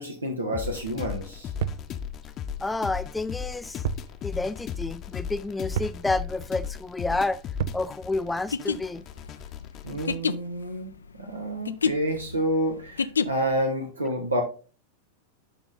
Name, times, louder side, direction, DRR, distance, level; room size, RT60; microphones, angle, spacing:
voice 1, 0.0-1.5 9.8-14.4, right 1 dB, 80° right, 1.3 m, -29 dB
sound 1, 0.5-10.2, left 8 dB, 30° left, 0.8 m, -36 dB
sound 2, 1.6-1.9 3.8-4.1 4.4-4.5 5.8-6.0 7.6-7.9, right 10 dB, 55° right, 0.4 m, -30 dB
voice 2, 2.6-3.8 4.2-7.4 7.7-9.0, left 2 dB, 10° left, 0.4 m, -29 dB
sound 3, 8.5-13.6, left 6 dB, 70° left, 0.4 m, -29 dB
11.5 x 3.9 x 3.8 m
figure-of-eight pair, 90°, 0 cm